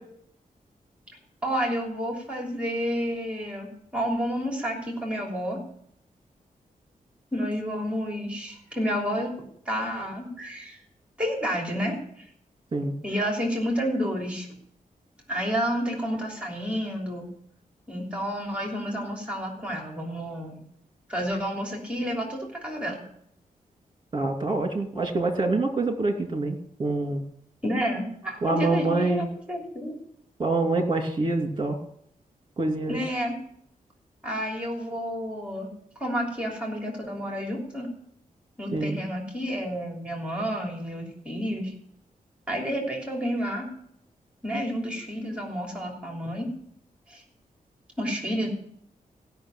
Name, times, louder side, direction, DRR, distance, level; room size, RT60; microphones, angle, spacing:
voice 1, 1.4-5.6 7.3-9.3 9.6-10.8 11.2-12.3 13.0-14.5 15.3-17.2 17.9-20.6 21.1-23.0 27.6-30.0 32.9-33.3 34.2-35.7 36.0-37.9 38.6-41.7 42.5-43.7 44.4-46.5 47.1-47.2 48.0-48.5, equal, 10° right, 0 dB, 3.3 m, -30 dB
voice 2, 24.1-27.2 28.4-29.3 30.4-31.8 32.6-33.0 38.7-39.0, right 2 dB, 30° right, 4 dB, 2.5 m, -26 dB
16.0 x 6.4 x 9.0 m, 0.68 s
wide cardioid pair, 160°, 15 cm